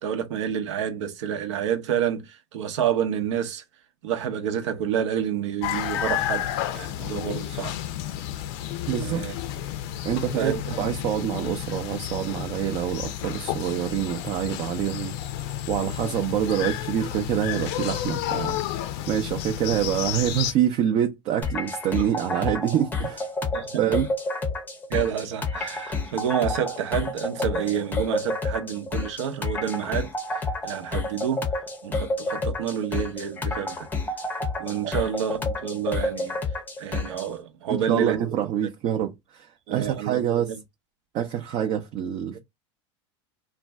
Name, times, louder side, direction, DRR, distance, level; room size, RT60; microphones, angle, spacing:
voice 1, 0.0-3.6 4.0-7.7 9.0-9.3 10.4-10.9 21.9-22.3 23.5-23.9 24.9-31.5 31.8-33.9 34.6-36.4 36.8-38.3 39.7-40.6 42.3-42.4, right 9 dB, 80° right, 0.7 m, -29 dB
sound 1, 5.6-20.5, left 12 dB, 60° left, 0.5 m, -31 dB
voice 2, 8.9-9.2 10.0-10.5 10.8-15.2 15.4-18.7 19.1-23.3 23.8-24.1 37.7-40.5 41.1-42.4, right 10 dB, 45° right, 0.5 m, -26 dB
sound 2, 21.4-37.3, left 2 dB, 10° left, 0.6 m, -30 dB
2.5 x 2.2 x 3.3 m
supercardioid pair, 110°, 15 cm